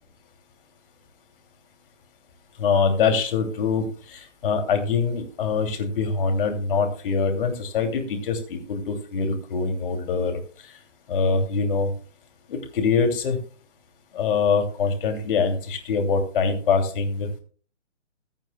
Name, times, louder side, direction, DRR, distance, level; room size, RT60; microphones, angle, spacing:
voice 1, 2.6-10.4 11.1-11.9 12.5-13.4 14.1-17.3, left 5 dB, 45° left, 5 dB, 2.8 m, -24 dB
21.5 x 9.1 x 2.3 m, 0.41 s
figure-of-eight pair, 135°, 37 cm